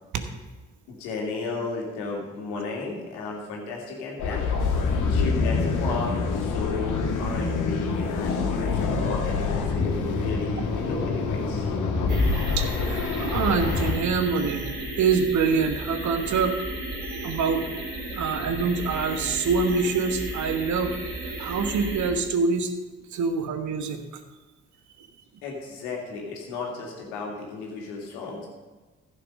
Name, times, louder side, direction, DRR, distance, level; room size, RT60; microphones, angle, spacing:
voice 1, 0.9-4.4 5.1-11.7 25.4-28.5, left 4 dB, 75° left, -1 dB, 2.3 m, -34 dB
sound 1, 4.2-13.9, left 4 dB, 55° left, 1.9 m, -26 dB
sound 2, 12.1-22.1, right 1 dB, 70° right, 2.9 m, -34 dB
voice 2, 12.6-14.7 15.0-16.5 17.2-17.7 18.1-22.7 23.1-24.0, right 5 dB, 55° right, 8 dB, 1.3 m, -25 dB
15.0 x 6.9 x 5.3 m, 1.3 s
figure-of-eight pair, 40°, 36 cm